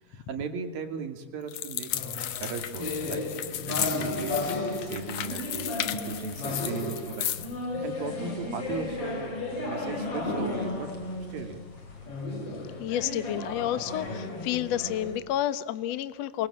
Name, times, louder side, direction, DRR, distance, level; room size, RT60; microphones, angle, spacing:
voice 1, 0.1-2.0 2.4-5.8 6.0-7.4 7.8-10.9 11.3-11.6, right 5 dB, 65° right, 6 dB, 4.2 m, -37 dB
sound 1, 1.5-7.5, left 12 dB, 65° left, 2.1 m, -34 dB
sound 2, 1.9-15.2, left 2 dB, 35° left, 4.5 m, -34 dB
voice 2, 12.8-16.5, left 12 dB, 85° left, 13 dB, 1.4 m, -30 dB
28.0 x 23.5 x 8.7 m, 1.0 s
omnidirectional pair, 4.6 m